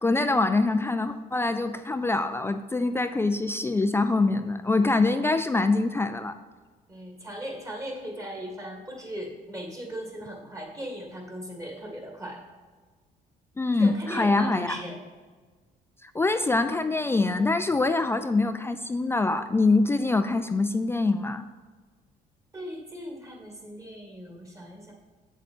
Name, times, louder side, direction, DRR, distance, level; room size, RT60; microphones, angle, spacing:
voice 1, 0.0-6.3 13.6-14.8 16.0-21.5, left 3 dB, 15° left, 9 dB, 0.3 m, -24 dB
voice 2, 6.9-12.4 13.8-15.0 22.5-24.9, equal, 20° right, 1 dB, 2.0 m, -38 dB
7.9 x 7.5 x 4.3 m, 1.4 s
cardioid pair, 110°, 17 cm